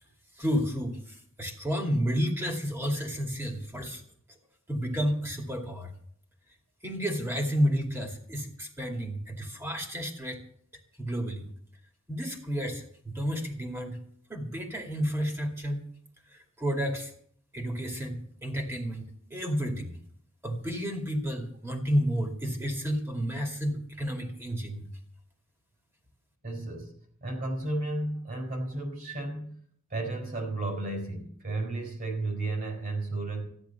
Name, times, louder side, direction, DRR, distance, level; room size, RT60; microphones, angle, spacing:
voice 1, 0.4-4.0 4.7-5.9 6.8-10.4 11.0-11.4 12.1-14.0 14.3-15.9 16.6-17.1 17.5-19.1 19.3-20.0 20.4-24.8, equal, 10° right, 2 dB, 2.4 m, -31 dB
voice 2, 26.4-26.9 27.2-29.6 29.9-33.5, right 2 dB, 40° right, 2 dB, 4.7 m, -33 dB
14.0 x 10.5 x 7.1 m, 0.62 s
head